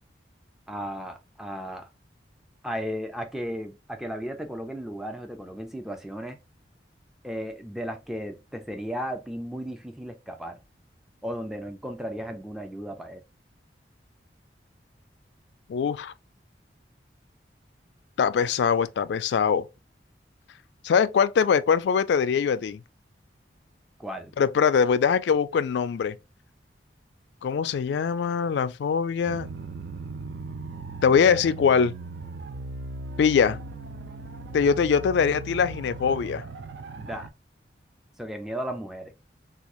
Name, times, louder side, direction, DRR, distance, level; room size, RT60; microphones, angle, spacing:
voice 1, 0.7-1.9 2.6-6.4 7.2-10.6 11.2-13.2 24.0-24.3 37.0-37.3 38.2-39.1, equal, ahead, 0.4 m, -35 dB
voice 2, 15.7-16.1 18.2-19.6 20.8-22.8 24.4-26.2 27.4-29.5 31.0-31.9 33.2-33.6 34.5-36.4, left 6 dB, 75° left, 0.3 m, -22 dB
sound 1, 29.3-37.3, right 3 dB, 75° right, 0.4 m, -38 dB
3.5 x 2.3 x 3.0 m
head